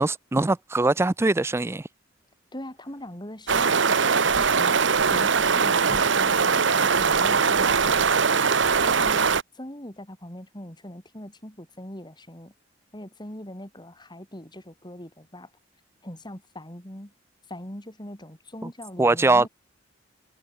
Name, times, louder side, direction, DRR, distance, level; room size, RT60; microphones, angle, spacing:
voice 1, 0.0-1.9 18.6-18.7 19.0-19.5, right 2 dB, 15° right, 0.4 m, -22 dB
voice 2, 2.5-4.8 5.1-8.2 8.8-9.3 9.5-12.5 12.9-15.5 16.0-17.1 17.5-19.5, left 1 dB, 20° left, 6.1 m, -41 dB
sound 1, 3.5-9.4, right 5 dB, 65° right, 1.1 m, -21 dB
head